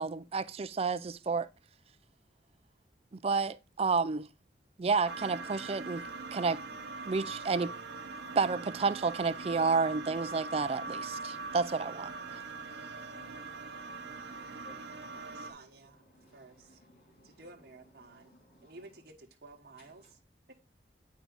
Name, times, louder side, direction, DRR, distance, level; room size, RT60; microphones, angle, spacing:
voice 1, 0.0-1.5 3.2-4.3 4.8-6.0 6.3-6.6 7.1-7.7 8.4-12.1, right 4 dB, 35° right, 0.4 m, -30 dB
sound 1, 5.0-15.5, right 3 dB, 85° right, 1.4 m, -42 dB
voice 2, 9.9-11.6 11.8-19.1 19.8-20.1, left 2 dB, 55° left, 2.7 m, -62 dB
voice 3, 15.3-16.0 16.3-16.8 17.2-18.3 18.6-20.0 20.5-20.6, right 2 dB, 60° right, 1.3 m, -53 dB
9.4 x 4.7 x 3.9 m
head